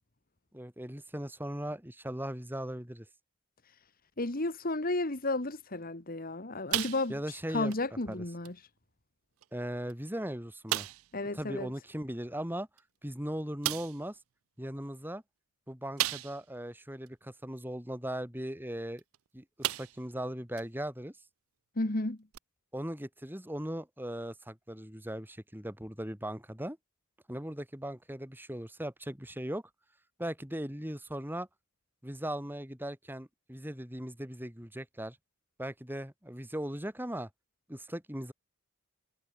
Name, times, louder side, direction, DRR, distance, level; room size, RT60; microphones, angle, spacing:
voice 1, 0.5-3.1 7.1-7.7 8.1-8.2 9.5-10.9 11.3-12.7 13.0-14.2 14.6-15.2 15.7-19.0 19.3-21.2 22.7-26.8 27.3-29.6 30.2-31.5 32.0-35.2 35.6-37.3 37.7-38.3, right 1 dB, 10° right, 3.6 m, -38 dB
voice 2, 4.2-7.1 7.5-8.5 11.1-11.7 21.8-22.2, left 2 dB, 40° left, 1.7 m, -32 dB
sound 1, 6.7-7.4 7.7-7.9 8.4-8.6 9.4-9.5 9.9-10.0 10.7-11.1 12.8-12.9 13.6-14.0 16.0-16.6 17.1-17.2 19.0-19.2 19.6-20.1 20.6-20.7 22.3-22.4, right 15 dB, 70° right, 0.4 m, -34 dB
head